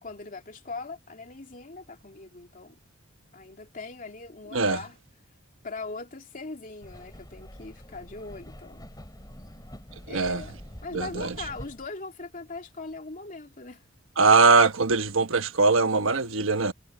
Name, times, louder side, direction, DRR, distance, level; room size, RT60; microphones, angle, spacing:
voice 1, 0.0-2.8 3.3-5.0 5.6-8.8 10.1-13.8, left 3 dB, 45° left, 2.7 m, -40 dB
sound 1, 6.8-11.9, equal, 20° left, 6.8 m, -45 dB
voice 2, 10.1-10.4 10.9-11.3 14.2-16.7, right 4 dB, 80° right, 1.3 m, -21 dB
head